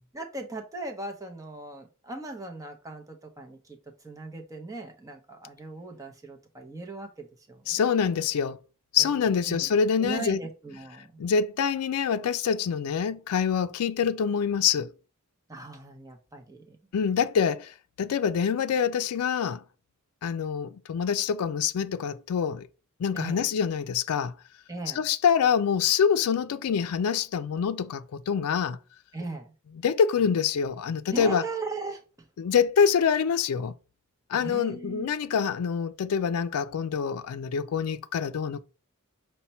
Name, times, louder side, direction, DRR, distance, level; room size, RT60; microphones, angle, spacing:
voice 1, 0.1-3.8 4.0-7.8 9.0-11.2 15.5-16.8 23.1-23.4 24.7-25.0 29.1-29.5 31.1-32.3 34.3-35.1, right 3 dB, 15° right, 0.7 m, -38 dB
voice 2, 7.7-8.6 8.9-10.4 11.2-14.9 16.9-19.6 20.2-22.7 23.0-24.3 24.9-28.8 29.8-31.4 32.4-33.7 34.3-38.6, left 7 dB, 90° left, 0.4 m, -25 dB
5.5 x 2.2 x 4.1 m
head